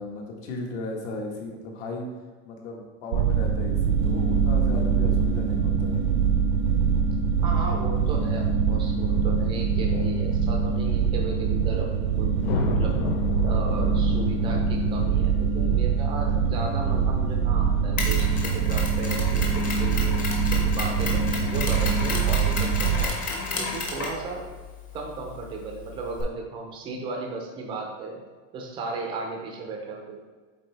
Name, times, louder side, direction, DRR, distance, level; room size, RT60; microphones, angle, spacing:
voice 1, 0.0-2.1 2.4-6.0, left 2 dB, 60° left, 0 dB, 1.4 m, -36 dB
sound 1, 3.1-23.0, right 6 dB, 90° right, 0.8 m, -24 dB
voice 2, 7.4-13.0 13.4-23.2 23.5-24.5 24.9-28.2 28.5-30.2, right 3 dB, 15° right, 1 dB, 0.4 m, -35 dB
sound 2, 12.4-16.8, left 4 dB, 80° left, 0.8 m, -32 dB
Mechanisms, 18.0-26.2, left 3 dB, 20° left, 0.8 m, -33 dB
8.4 x 3.6 x 3.3 m, 1.4 s
supercardioid pair, 175°, 38 cm